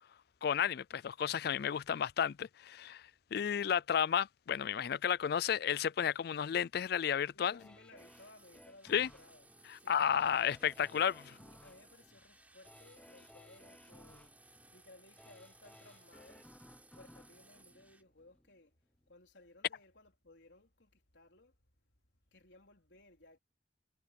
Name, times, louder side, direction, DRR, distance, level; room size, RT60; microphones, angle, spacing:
voice 1, 0.4-7.6 8.9-9.1 9.9-11.1, left 8 dB, 60° left, 0.4 m, -32 dB
voice 2, 7.3-9.5 9.8-10.3 10.8-14.3 14.7-16.5 16.9-18.8 19.1-21.6 22.3-23.4, left 2 dB, 85° left, 4.2 m, -61 dB
sound 1, 7.6-18.5 19.0-19.1, left 1 dB, 5° left, 0.9 m, -60 dB
sound 2, 8.0-18.0, right 2 dB, 10° right, 3.7 m, -62 dB
head